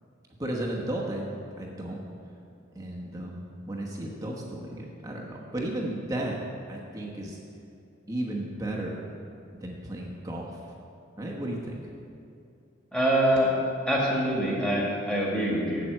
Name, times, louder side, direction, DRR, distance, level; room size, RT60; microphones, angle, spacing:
voice 1, 0.4-1.3 1.6-2.0 2.7-6.4 6.7-7.4 8.1-9.0 9.5-10.6 11.2-11.8, right 1 dB, 15° right, -2 dB, 1.0 m, -34 dB
voice 2, 12.9-13.5 13.9-15.9, right 1 dB, 5° left, -4 dB, 1.9 m, -25 dB
7.8 x 7.5 x 7.6 m, 2.6 s
head